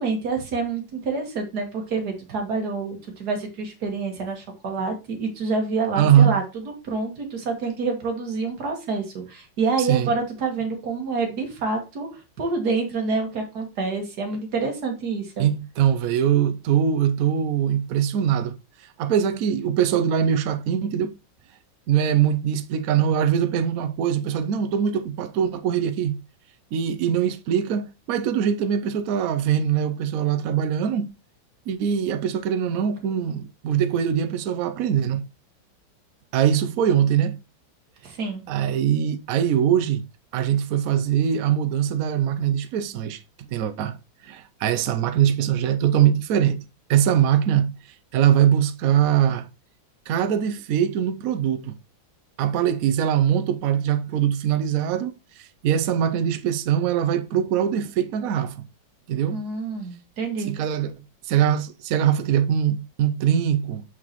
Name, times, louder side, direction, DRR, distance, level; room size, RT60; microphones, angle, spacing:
voice 1, 0.0-15.5 38.0-38.4 59.3-60.6, right 4 dB, 55° right, 2.1 m, -27 dB
voice 2, 6.0-6.4 9.8-10.1 15.4-18.6 19.0-21.1 21.9-26.1 26.7-31.1 31.7-35.2 36.3-37.4 38.5-40.0 40.3-43.2 43.5-44.0 44.3-46.6 46.9-47.7 48.1-49.5 50.1-51.7 52.4-58.6 59.1-59.4 60.4-60.9 61.3-63.8, right 9 dB, 70° right, 0.8 m, -22 dB
6.3 x 5.8 x 3.0 m
omnidirectional pair, 2.1 m